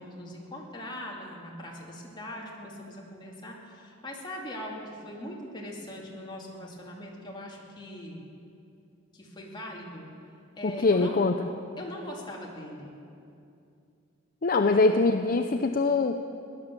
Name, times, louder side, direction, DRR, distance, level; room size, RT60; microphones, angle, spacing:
voice 1, 0.0-8.2 9.1-10.1 10.6-11.2 11.8-13.0 14.6-14.9, left 1 dB, 25° left, -2 dB, 2.4 m, -41 dB
voice 2, 10.6-11.5 14.4-16.2, left 3 dB, 50° left, 6 dB, 0.6 m, -23 dB
17.0 x 11.5 x 7.4 m, 2.6 s
head